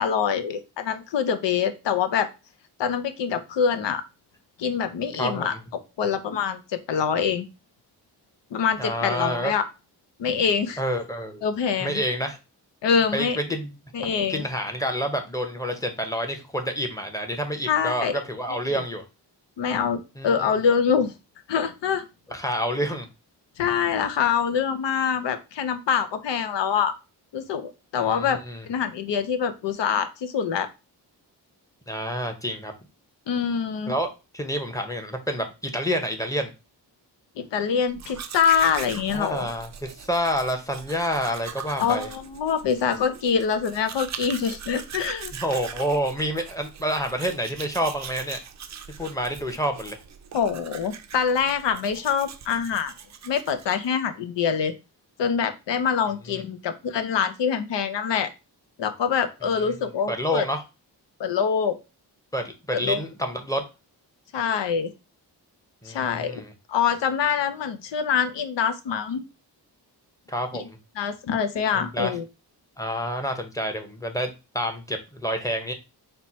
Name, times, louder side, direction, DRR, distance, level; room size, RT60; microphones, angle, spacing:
voice 1, 0.0-2.3 2.8-4.0 4.6-5.5 6.0-7.5 8.5-9.6 10.2-10.8 11.4-12.0 12.8-13.4 13.9-14.4 17.7-18.2 19.6-21.1 21.5-22.0 23.6-26.9 27.3-28.4 28.7-30.7 33.3-33.9 37.4-39.5 41.8-45.3 50.3-52.9 53.2-54.7 55.2-58.3 58.8-60.5 61.2-61.8 62.7-63.0 64.3-64.9 65.9-66.4 66.7-69.2 70.5-70.6 71.0-72.2, left 7 dB, 85° left, 10 dB, 0.7 m, -25 dB
voice 2, 5.2-5.6 8.8-9.5 10.8-11.5 11.8-12.4 13.1-13.7 14.3-19.0 20.2-20.5 22.3-23.1 28.0-28.7 31.9-32.7 33.9-34.1 34.3-36.5 39.1-42.1 45.4-48.4 49.0-50.0 56.3-56.4 60.1-60.6 62.3-63.6 65.8-66.5 70.3-70.8 71.7-72.1 72.8-75.7, equal, 10° left, 5 dB, 0.8 m, -28 dB
Domestic sounds home sounds, 37.9-54.0, right 7 dB, 45° right, 0.5 m, -41 dB
4.3 x 2.2 x 4.2 m, 0.28 s
wide cardioid pair, 90°, 42 cm